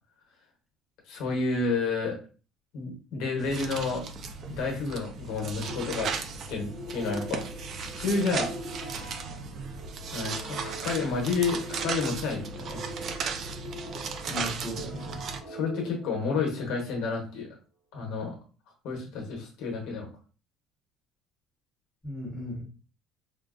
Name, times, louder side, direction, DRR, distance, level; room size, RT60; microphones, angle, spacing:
voice 1, 1.1-2.2 2.7-4.1 4.5-6.1 6.5-7.4 7.8-8.5 10.1-12.9 15.5-17.6 17.9-18.3 18.8-20.1, left 4 dB, 65° left, 1 dB, 1.0 m, -30 dB
sound 1, 3.4-15.4, right 5 dB, 40° right, 0.4 m, -36 dB
sound 2, 5.6-16.9, right 1 dB, 20° right, 0.9 m, -43 dB
voice 2, 14.3-15.2 22.0-22.6, left 1 dB, ahead, -5 dB, 1.2 m, -36 dB
3.7 x 2.3 x 2.4 m, 0.36 s
cardioid pair, 160°, 0 cm